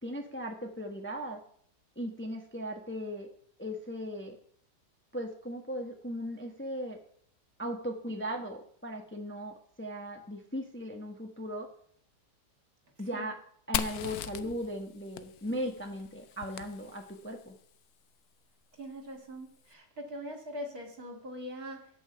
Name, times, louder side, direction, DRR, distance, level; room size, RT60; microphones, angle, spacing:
voice 1, 0.0-1.4 2.0-3.3 3.6-4.4 5.1-7.0 7.6-11.7 13.0-13.3 13.7-17.5, equal, 10° left, 3 dB, 1.1 m, -37 dB
Fire, 13.7-17.4, left 10 dB, 70° left, 1.0 m, -39 dB
voice 2, 18.8-21.9, equal, 60° right, 3 dB, 2.8 m, -42 dB
9.8 x 8.6 x 6.8 m, 0.62 s
omnidirectional pair, 1.8 m